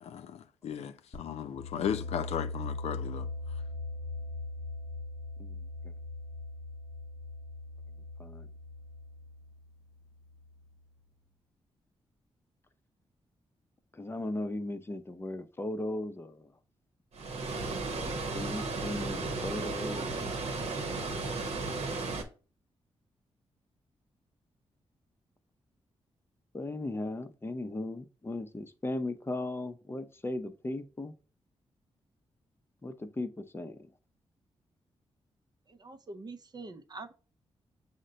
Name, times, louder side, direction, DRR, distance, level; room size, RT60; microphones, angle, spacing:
voice 1, 0.0-3.3, left 8 dB, 75° left, 0.4 m, -36 dB
sound 1, 1.1-10.7, left 2 dB, 40° left, 1.0 m, -41 dB
voice 2, 5.4-5.9 8.2-8.5 13.9-16.5 17.8-20.3 26.5-31.1 32.8-33.9, left 2 dB, 20° left, 0.6 m, -37 dB
Water, 17.1-22.2, right 3 dB, 75° right, 0.9 m, -34 dB
voice 3, 35.7-37.1, right 3 dB, 40° right, 0.6 m, -45 dB
6.3 x 2.2 x 3.9 m
cardioid pair, 60°, 11 cm